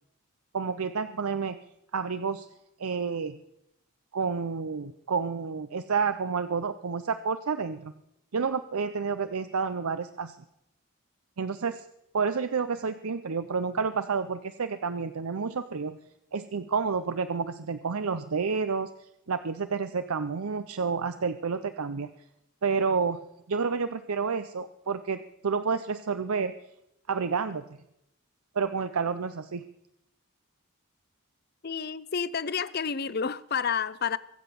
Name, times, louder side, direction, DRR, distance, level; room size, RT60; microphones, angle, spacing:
voice 1, 0.5-1.6 1.9-2.5 2.8-3.4 4.1-7.9 8.3-10.4 11.4-11.8 12.1-16.0 16.3-18.9 19.3-22.1 22.6-23.2 23.5-26.5 27.1-27.6 28.5-29.6, right 5 dB, 90° right, 0.7 m, -29 dB
voice 2, 31.6-34.2, left 6 dB, 45° left, 0.6 m, -30 dB
23.0 x 7.9 x 6.9 m
head